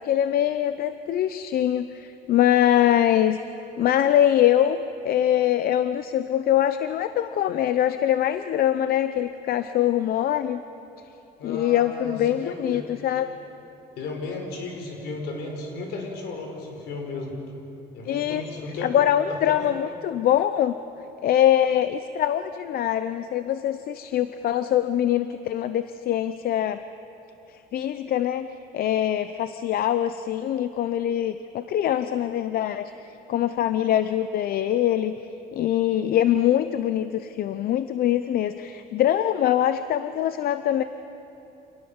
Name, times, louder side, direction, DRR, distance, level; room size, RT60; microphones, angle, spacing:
voice 1, 0.0-3.4 3.8-4.8 5.0-10.6 11.4-13.3 18.0-18.4 18.8-20.8 21.2-26.8 27.5-28.5 28.7-32.9 33.3-35.1 35.5-40.8, left 11 dB, 60° left, 12 dB, 0.7 m, -23 dB
voice 2, 11.4-12.8 13.9-17.3 17.9-18.9 19.5-19.6, left 3 dB, 80° left, 2 dB, 4.9 m, -34 dB
27.0 x 18.5 x 7.2 m, 2.9 s
cardioid pair, 110°, 17 cm